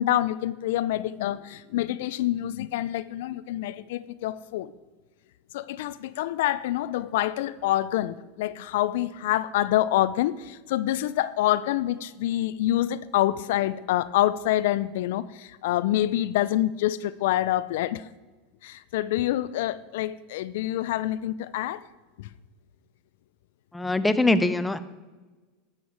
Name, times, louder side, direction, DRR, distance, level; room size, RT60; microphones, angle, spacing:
voice 1, 0.0-4.7 5.5-18.0 18.6-21.8 22.2-22.3, left 14 dB, 75° left, 15 dB, 0.3 m, -26 dB
voice 2, 23.7-24.8, left 2 dB, 10° left, 11 dB, 0.6 m, -22 dB
11.5 x 7.1 x 4.6 m, 1.3 s
hypercardioid pair, 100°, 0 cm